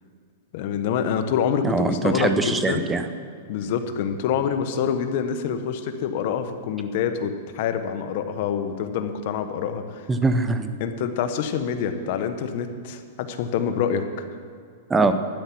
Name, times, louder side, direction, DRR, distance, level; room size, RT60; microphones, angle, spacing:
voice 1, 0.5-2.9 3.5-10.1 10.8-14.0, left 7 dB, 55° left, 8 dB, 1.1 m, -26 dB
voice 2, 1.6-3.1 10.1-10.7 14.9-15.1, right 3 dB, 10° right, 9 dB, 0.7 m, -22 dB
12.0 x 9.7 x 6.1 m, 2.2 s
hypercardioid pair, 145°, 0 cm